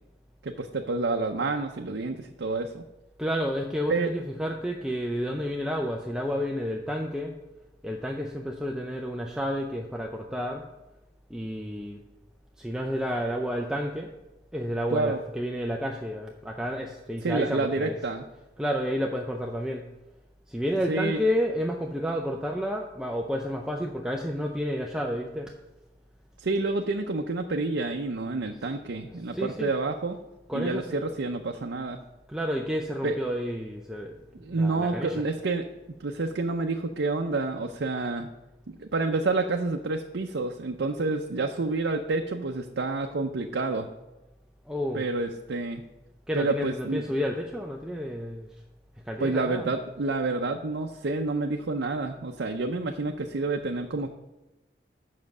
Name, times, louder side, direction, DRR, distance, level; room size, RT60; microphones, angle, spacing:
voice 1, 0.4-2.8 3.9-4.1 14.9-15.2 17.2-18.2 20.9-21.2 26.4-30.2 30.5-32.0 33.0-33.2 34.3-35.7 36.0-38.3 38.7-43.9 44.9-45.8 46.3-47.0 49.2-54.1, right 3 dB, 85° right, 3 dB, 0.6 m, -29 dB
voice 2, 3.2-7.3 7.8-10.7 11.3-12.0 12.6-14.1 14.5-18.0 18.6-19.9 20.5-25.5 29.3-29.7 30.5-31.0 32.3-34.2 34.5-35.2 44.7-45.1 46.3-48.5 49.0-49.7, equal, 5° right, 1 dB, 0.5 m, -30 dB
7.4 x 5.8 x 6.5 m, 1.0 s
head